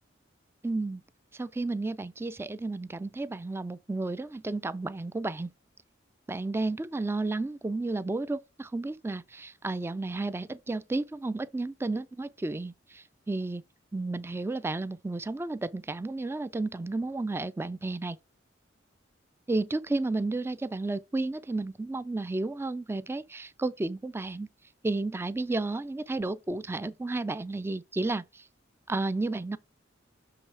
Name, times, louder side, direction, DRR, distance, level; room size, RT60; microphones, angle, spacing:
voice 1, 0.6-1.0 1.3-5.5 6.3-13.6 13.9-18.2 19.5-24.5 24.8-28.4 28.9-29.6, right 2 dB, 10° right, 0.3 m, -32 dB
7.0 x 3.2 x 4.7 m
head